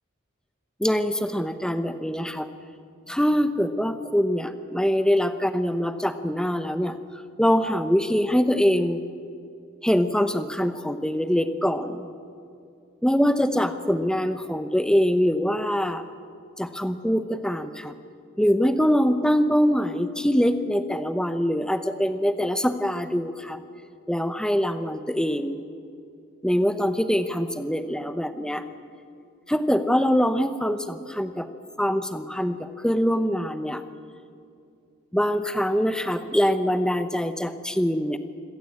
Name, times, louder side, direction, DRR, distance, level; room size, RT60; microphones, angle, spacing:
voice 1, 0.8-2.5 3.1-7.0 7.4-9.0 9.8-12.1 13.0-16.0 16.6-17.9 18.4-23.6 24.1-25.6 26.4-28.6 29.5-31.5 31.8-33.8 35.1-38.2, equal, 5° left, 10 dB, 0.8 m, -23 dB
26.0 x 16.0 x 8.5 m, 2.5 s
head